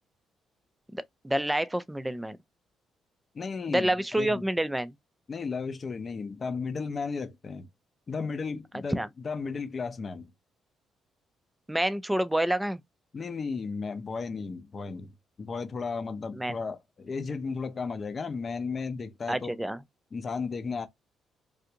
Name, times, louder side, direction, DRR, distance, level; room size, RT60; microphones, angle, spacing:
voice 1, 0.9-2.4 3.7-4.9 8.9-9.1 11.7-12.8 16.3-16.5 19.3-19.8, right 1 dB, 5° right, 0.4 m, -28 dB
voice 2, 3.3-3.9 4.2-4.5 5.3-7.7 8.1-10.3 13.1-15.1 15.4-19.5 20.1-20.9, left 4 dB, 40° left, 0.6 m, -34 dB
3.3 x 2.5 x 2.8 m
cardioid pair, 90°, 0 cm